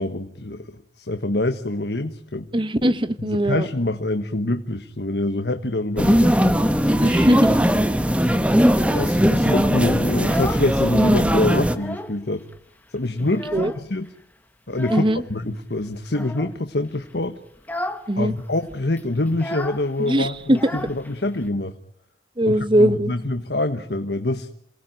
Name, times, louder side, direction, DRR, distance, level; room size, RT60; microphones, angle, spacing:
voice 1, 0.0-2.5 3.2-6.3 8.9-12.4 12.9-14.1 14.7-17.4 18.2-21.7 22.4-24.5, left 2 dB, 65° left, 1.3 m, -25 dB
voice 2, 2.5-3.7 7.0-7.7 13.2-13.7 14.9-15.2 18.1-18.3 20.0-20.6 22.4-23.1, right 1 dB, 30° right, 1.2 m, -21 dB
sound 1, 6.0-11.8, equal, 5° right, 1.2 m, -19 dB
Child speech kid speaking, 10.1-11.1 11.4-12.2 12.5-12.6 13.0-14.1 14.7-15.2 16.1-16.6 17.0-17.2 17.6-18.1 18.4-18.5 18.7-21.5, left 1 dB, 10° left, 1.4 m, -34 dB
28.0 x 18.5 x 9.1 m
head